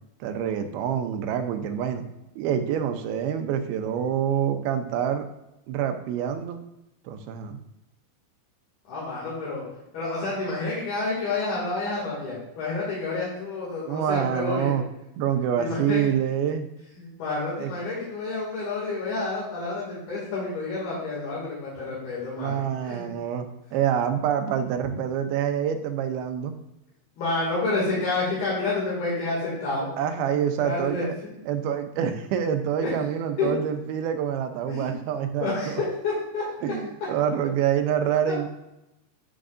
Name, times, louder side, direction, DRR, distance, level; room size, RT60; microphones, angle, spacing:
voice 1, 0.2-2.0 2.4-5.3 5.7-6.6 7.1-7.6 13.9-14.8 15.2-16.7 17.5-17.7 22.4-23.5 23.7-26.6 30.0-31.2 31.5-35.7 36.6-38.5, right 9 dB, 80° right, 7 dB, 2.5 m, -26 dB
voice 2, 8.9-9.6 9.9-14.8 15.6-16.0 17.0-23.1 24.8-25.0 27.2-29.9 30.6-31.3 32.8-32.9 33.4-33.5 34.7-35.0 35.4-35.7 36.0-36.4, left 3 dB, 70° left, -6 dB, 4.3 m, -29 dB
13.5 x 5.1 x 2.6 m, 0.90 s
omnidirectional pair, 4.6 m